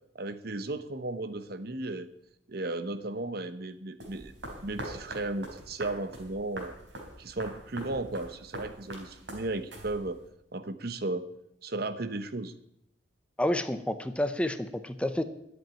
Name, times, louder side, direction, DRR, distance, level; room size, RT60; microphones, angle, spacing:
voice 1, 0.1-2.1 2.5-4.3 4.6-6.7 7.2-10.2 10.5-11.3 11.6-12.5, right 2 dB, 55° right, 11 dB, 1.0 m, -35 dB
sound 1, 4.0-10.3, right 1 dB, 85° right, 3.8 m, -43 dB
voice 2, 13.4-15.2, left 1 dB, 5° left, 10 dB, 0.7 m, -29 dB
12.0 x 8.0 x 9.0 m, 0.77 s
head